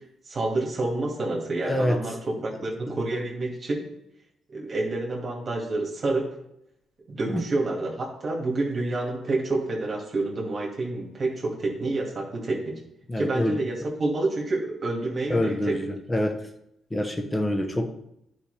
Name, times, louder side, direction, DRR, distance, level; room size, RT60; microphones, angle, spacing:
voice 1, 0.3-3.9 4.5-6.3 7.1-12.8 13.2-13.7 14.0-15.7, right 2 dB, 40° right, -2 dB, 2.2 m, -28 dB
voice 2, 1.6-2.0 2.9-3.0 7.3-7.4 13.1-13.6 15.3-16.5 16.9-18.0, left 1 dB, 15° left, 7 dB, 0.9 m, -26 dB
10.0 x 4.9 x 3.4 m, 0.78 s
cardioid pair, 90°, 0 cm